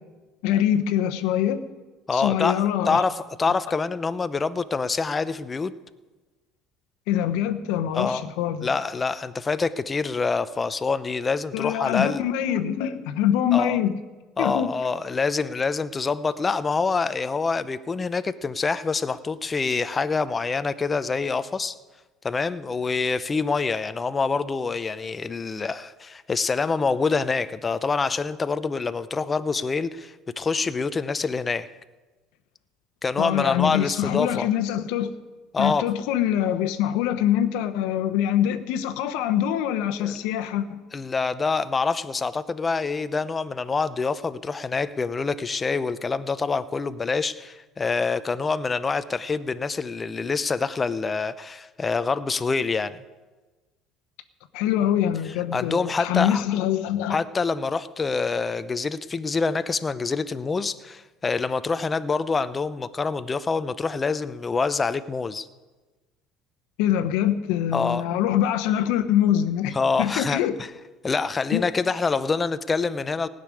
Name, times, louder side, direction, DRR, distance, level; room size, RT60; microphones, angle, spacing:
voice 1, 0.4-1.6 2.1-3.0 7.1-8.7 11.5-14.0 14.4-14.7 33.2-35.1 35.6-40.8 54.5-57.2 66.8-70.6 71.5-71.6, left 10 dB, 75° left, 9 dB, 1.0 m, -24 dB
voice 2, 2.1-5.7 7.9-8.3 8.6-12.2 13.5-13.8 14.4-21.7 22.2-31.7 33.0-34.5 35.5-35.9 40.0-40.2 40.9-53.0 55.5-56.4 57.1-65.5 67.7-68.0 69.7-70.4 71.0-73.3, left 4 dB, 25° left, 13 dB, 0.7 m, -26 dB
16.5 x 6.8 x 9.8 m, 1.2 s
supercardioid pair, 80°, 0 cm